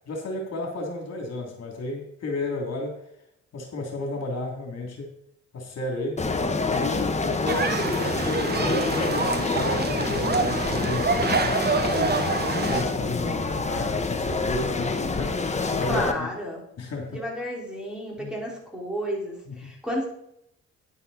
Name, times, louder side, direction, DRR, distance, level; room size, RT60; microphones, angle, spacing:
voice 1, 0.1-3.0 3.5-5.1 5.5-6.2 6.7-12.3 12.6-16.3 16.8-17.2 18.2-18.4 19.5-19.7, left 2 dB, 55° left, 1 dB, 2.9 m, -32 dB
sound 1, 6.2-16.1, left 3 dB, 20° left, 1.3 m, -27 dB
sound 2, 7.5-12.8, right 5 dB, 35° right, 1.1 m, -27 dB
voice 2, 15.9-16.6 17.1-20.1, equal, 5° right, -2 dB, 4.3 m, -32 dB
10.5 x 8.9 x 4.1 m, 0.74 s
cardioid pair, 90°, 30 cm